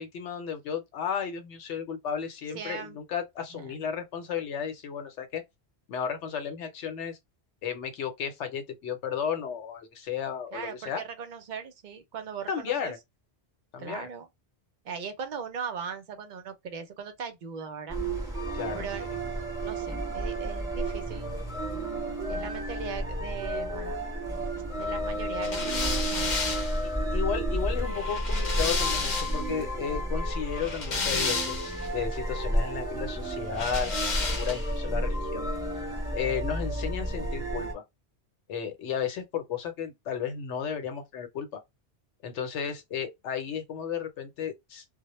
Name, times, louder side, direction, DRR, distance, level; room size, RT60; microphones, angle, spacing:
voice 1, 0.0-5.4 5.9-7.2 7.6-11.0 12.5-13.0 13.7-14.1 18.5-19.2 27.1-34.0 34.3-35.5 36.1-37.8 38.5-41.6 42.2-44.8, left 7 dB, 90° left, 1.0 m, -33 dB
voice 2, 2.5-3.0 3.5-3.7 10.5-12.9 13.8-14.3 14.8-18.0 18.7-19.1 19.6-21.4 22.3-24.0 24.7-26.7, right 6 dB, 55° right, 0.6 m, -39 dB
sound 1, 17.9-37.7, right 1 dB, 5° right, 0.8 m, -31 dB
sound 2, 25.4-29.5 30.4-31.9 33.5-34.8, left 4 dB, 50° left, 0.7 m, -32 dB
2.1 x 2.0 x 2.9 m
omnidirectional pair, 1.2 m